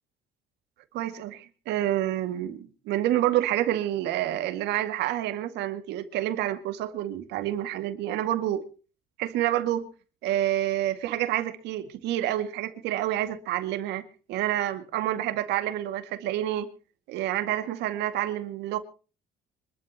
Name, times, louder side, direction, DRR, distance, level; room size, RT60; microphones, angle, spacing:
voice 1, 0.9-8.6 9.2-9.9 10.2-14.0 14.3-16.7 17.1-18.8, right 13 dB, 85° right, 2.1 m, -28 dB
25.0 x 12.5 x 2.9 m
cardioid pair, 110°, 17 cm